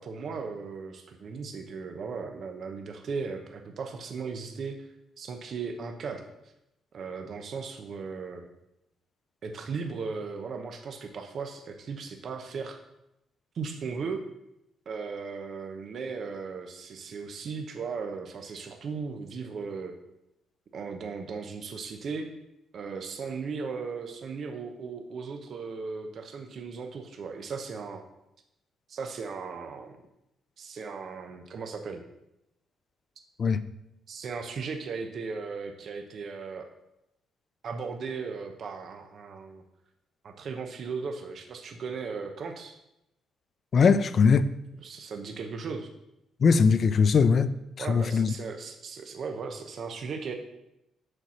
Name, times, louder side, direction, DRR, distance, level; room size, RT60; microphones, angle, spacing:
voice 1, 0.0-4.9 5.2-6.2 6.9-8.4 9.4-12.8 13.5-14.2 14.9-19.9 20.7-22.3 22.7-28.0 28.9-29.9 30.6-32.0 34.1-36.7 37.6-39.6 40.2-42.8 44.8-45.9 47.8-50.3, right 5 dB, 55° right, 0.8 m, -37 dB
voice 2, 43.7-44.5 46.4-48.3, left 5 dB, 50° left, 0.5 m, -21 dB
6.6 x 4.3 x 6.2 m
cardioid pair, 90°, 0 cm